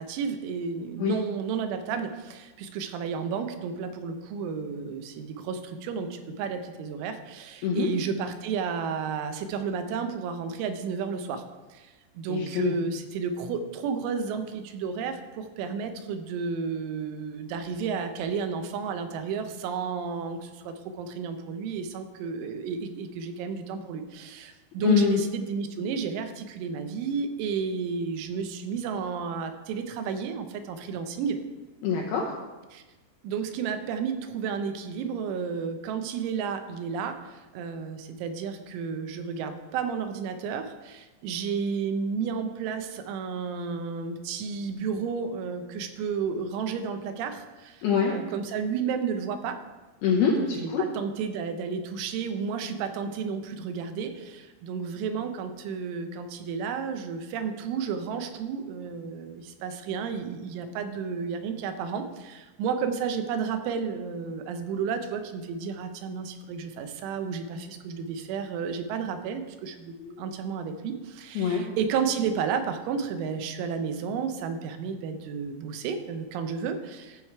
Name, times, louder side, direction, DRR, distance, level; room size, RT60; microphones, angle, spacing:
voice 1, 0.0-11.4 11.7-31.4 32.7-32.8 33.2-49.6 50.6-77.2, right 6 dB, 85° right, 7 dB, 3.2 m, -32 dB
voice 2, 12.3-12.8 24.8-25.2 31.8-32.3 47.8-48.2 50.0-50.8 70.0-70.1 71.4-71.6, left 6 dB, 80° left, 0 dB, 2.3 m, -24 dB
14.5 x 4.9 x 4.6 m, 1.2 s
omnidirectional pair, 5.4 m